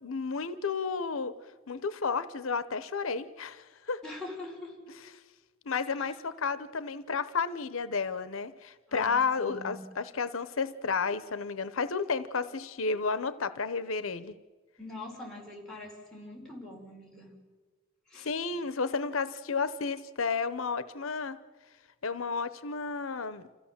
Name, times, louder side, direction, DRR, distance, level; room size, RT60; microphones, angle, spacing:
voice 1, 0.0-1.3 1.7-4.0 5.7-14.3 18.2-21.4 22.0-23.4, left 5 dB, 90° left, 14 dB, 0.8 m, -32 dB
voice 2, 4.0-4.8 6.0-6.1 8.9-9.8 14.8-17.4 18.1-18.3, left 2 dB, 5° left, -3 dB, 4.4 m, -43 dB
27.0 x 15.5 x 7.3 m, 1.4 s
head